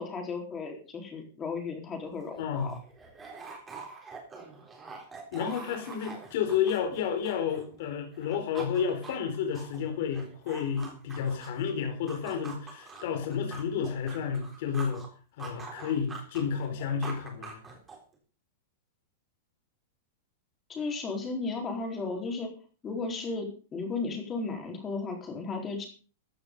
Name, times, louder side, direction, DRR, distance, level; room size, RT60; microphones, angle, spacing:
voice 1, 0.0-2.7 20.7-22.5 22.8-25.9, left 4 dB, 15° left, 3 dB, 4.1 m, -34 dB
sound 1, 2.0-2.1 2.3-7.8 8.1-11.6 12.1-15.1 15.4-18.1, right 4 dB, 15° right, 3.7 m, -45 dB
voice 2, 2.4-2.7 5.3-15.0 15.4-17.6, left 7 dB, 55° left, 4 dB, 4.3 m, -31 dB
15.0 x 9.8 x 5.5 m, 0.38 s
supercardioid pair, 165°, 0 cm